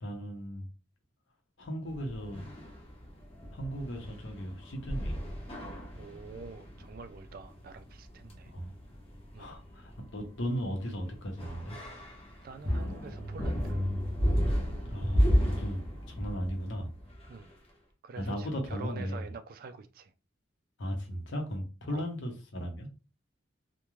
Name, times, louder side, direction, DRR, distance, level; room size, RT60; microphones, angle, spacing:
voice 1, 0.0-0.7 1.6-2.5 3.5-5.2 8.5-8.7 9.4-11.8 14.9-16.9 18.2-19.3 20.8-22.9, equal, 65° left, 0.7 m, -36 dB
sound 1, 1.9-17.5, equal, 30° left, 0.7 m, -34 dB
voice 2, 5.9-8.5 9.3-9.5 12.4-13.8 17.3-17.5 18.0-20.1 21.9-22.1, right 4 dB, 50° right, 0.3 m, -46 dB
2.3 x 2.1 x 3.0 m
head